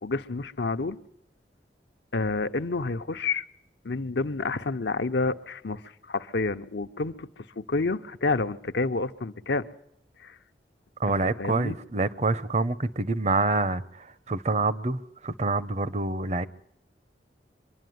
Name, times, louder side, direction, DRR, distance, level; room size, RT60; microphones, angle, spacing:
voice 1, 0.0-1.0 2.1-3.5 3.8-5.8 6.1-7.3 7.6-9.7 10.2-10.3 11.1-11.8, left 3 dB, 80° left, 0.8 m, -29 dB
voice 2, 11.0-16.5, right 3 dB, 40° right, 0.7 m, -27 dB
24.0 x 11.5 x 9.4 m
head